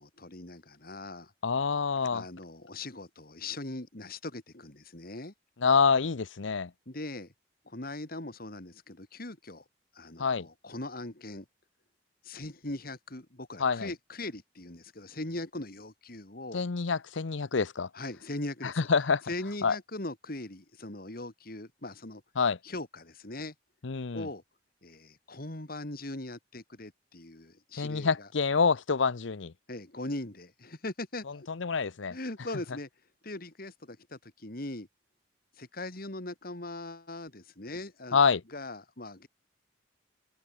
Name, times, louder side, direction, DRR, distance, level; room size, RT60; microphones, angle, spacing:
voice 1, 0.0-1.3 2.1-5.3 6.9-7.3 7.7-9.6 9.9-11.5 12.2-16.6 17.9-18.8 19.3-22.2 22.6-23.5 24.1-24.4 24.8-28.3 29.7-31.5 32.1-32.9 33.2-34.9 35.6-38.2 38.5-39.3, left 2 dB, 50° left, 2.7 m, -40 dB
voice 2, 1.4-2.2 5.6-6.7 10.2-10.5 13.6-13.9 16.5-17.9 18.9-19.2 19.6-19.8 22.4-22.6 23.8-24.3 27.8-29.5 31.5-32.2 38.1-38.4, left 5 dB, 85° left, 0.7 m, -26 dB
open air
head